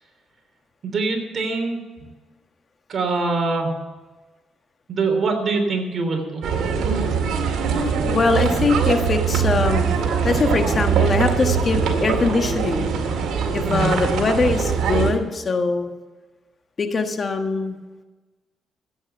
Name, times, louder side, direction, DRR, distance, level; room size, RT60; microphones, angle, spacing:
voice 1, 0.8-1.8 2.9-3.7 4.9-6.4 13.6-14.0, right 3 dB, 45° right, 4 dB, 3.3 m, -23 dB
sound 1, 6.4-15.1, right 6 dB, 75° right, 2.2 m, -22 dB
voice 2, 8.1-9.9 10.2-12.9 13.5-15.9 16.8-17.8, left 4 dB, 40° left, 6 dB, 1.4 m, -22 dB
14.0 x 8.8 x 7.0 m, 1.2 s
cardioid pair, 90°, 0 cm